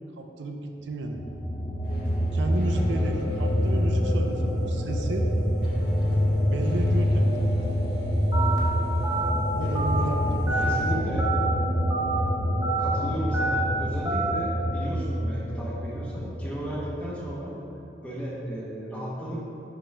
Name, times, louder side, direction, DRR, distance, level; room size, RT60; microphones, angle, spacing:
voice 1, 0.2-1.2 2.3-5.3 6.4-7.8 9.6-11.0, right 2 dB, 90° right, 3 dB, 0.5 m, -33 dB
sound 1, 1.1-17.3, equal, 30° left, 0.6 m, -26 dB
sound 2, 1.8-10.9, equal, 65° left, 1.3 m, -40 dB
Telephone, 8.3-8.6 9.0-9.3 9.7-10.0 10.5-10.7 11.2-11.5 11.9-12.2 12.6-12.9 13.3-13.6 14.0-14.3, right 3 dB, 20° right, 0.8 m, -27 dB
voice 2, 10.6-11.2 12.8-17.5 18.0-19.4, right 1 dB, 10° left, -5 dB, 0.9 m, -34 dB
6.0 x 3.5 x 5.3 m, 2.8 s
head